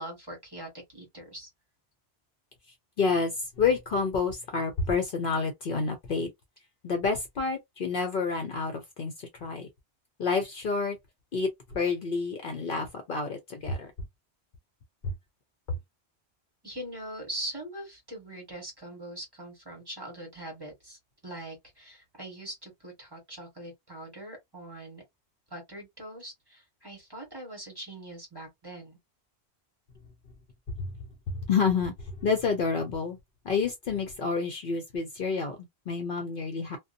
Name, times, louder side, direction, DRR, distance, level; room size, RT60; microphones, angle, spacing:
voice 1, 0.0-1.5 16.6-25.0 25.5-29.0, right 1 dB, 20° right, 1.2 m, -42 dB
voice 2, 3.0-6.3 6.8-9.7 10.2-11.0 11.3-13.9 15.0-15.1 15.7-15.8 30.8-30.9 31.3-33.2 33.4-36.8, left 4 dB, 60° left, 0.7 m, -29 dB
2.5 x 2.2 x 2.5 m
omnidirectional pair, 1.1 m